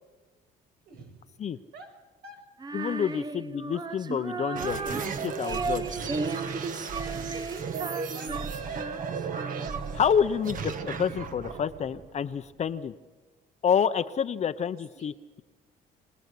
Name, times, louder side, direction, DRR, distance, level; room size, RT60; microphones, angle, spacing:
voice 1, 0.9-1.3 1.7-1.9 2.2-2.4 3.0-3.2 7.0-8.9 14.9-15.1, right 3 dB, 75° right, 4 dB, 6.9 m, -46 dB
Female singing, 2.6-10.0, right 4 dB, 25° right, 0.9 m, -35 dB
voice 2, 2.7-5.9 9.9-12.9 13.6-15.4, left 7 dB, 40° left, 10 dB, 0.8 m, -28 dB
sound 1, 4.5-12.8, right 5 dB, 50° right, 1.8 m, -35 dB
24.5 x 19.5 x 8.5 m, 1.2 s
cardioid pair, 110°, 17 cm